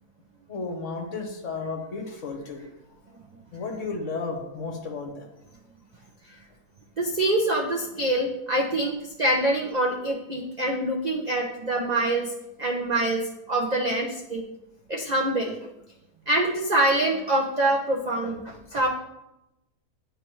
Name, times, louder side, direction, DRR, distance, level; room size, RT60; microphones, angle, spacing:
voice 1, 0.5-2.6 3.5-5.2, left 4 dB, 55° left, 2 dB, 1.1 m, -33 dB
voice 2, 7.0-12.3 12.6-14.4 14.9-15.6 16.3-18.9, right 1 dB, 70° right, -1 dB, 0.4 m, -25 dB
9.8 x 3.3 x 3.1 m, 0.91 s
omnidirectional pair, 1.7 m